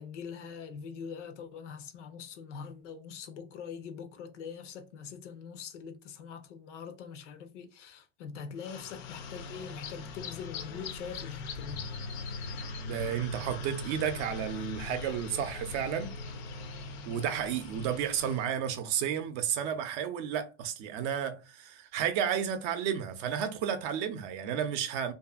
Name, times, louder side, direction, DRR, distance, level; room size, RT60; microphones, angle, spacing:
voice 1, 0.0-11.9, left 6 dB, 85° left, 0.7 m, -43 dB
sound 1, 8.6-18.5, left 3 dB, 35° left, 0.4 m, -41 dB
voice 2, 12.8-16.2 17.1-25.1, right 8 dB, 45° right, 0.5 m, -32 dB
2.6 x 2.6 x 2.3 m
supercardioid pair, 135°, 35 cm